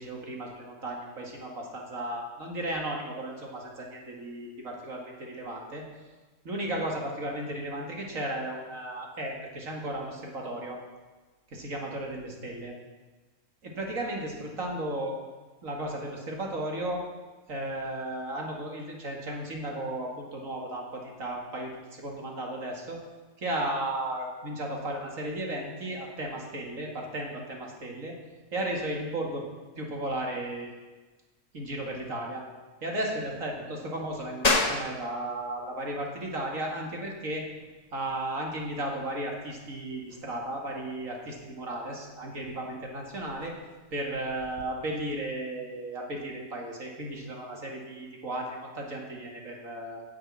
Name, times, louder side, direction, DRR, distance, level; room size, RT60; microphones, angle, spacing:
voice 1, 0.0-5.8 6.4-10.8 11.5-12.7 13.6-15.2 15.6-17.0 17.5-23.0 23.4-28.1 28.5-29.4 29.8-30.8 31.5-32.4 32.8-37.4 37.9-43.5 43.9-50.0, right 1 dB, 75° right, 0 dB, 2.6 m, -35 dB
sound 1, 34.4-44.7, left 3 dB, 30° left, 1.2 m, -35 dB
10.5 x 7.9 x 8.6 m, 1.3 s
omnidirectional pair, 1.4 m